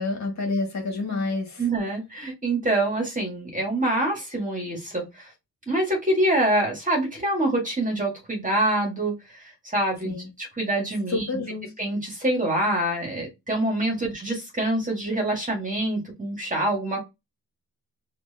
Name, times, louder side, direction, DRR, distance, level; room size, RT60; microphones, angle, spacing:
voice 1, 0.0-1.6 10.0-10.3 11.1-11.7, left 3 dB, 45° left, 1.9 m, -28 dB
voice 2, 1.6-5.3 5.7-9.2 9.7-11.3 11.8-17.0, right 1 dB, 20° right, 1.9 m, -25 dB
4.5 x 2.9 x 2.8 m
wide cardioid pair, 125°, 37 cm